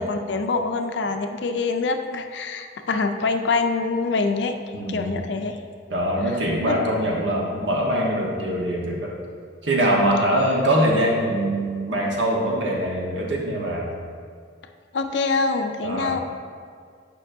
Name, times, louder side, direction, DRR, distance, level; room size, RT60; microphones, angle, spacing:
voice 1, 0.0-4.6 4.9-5.6 6.7-6.8 14.9-16.2, left 4 dB, 65° left, 6 dB, 0.4 m, -25 dB
voice 2, 4.7-5.1 5.9-9.1 9.6-13.9 15.8-16.2, right 1 dB, 80° right, -2 dB, 1.2 m, -23 dB
8.9 x 5.3 x 2.6 m, 2.1 s
head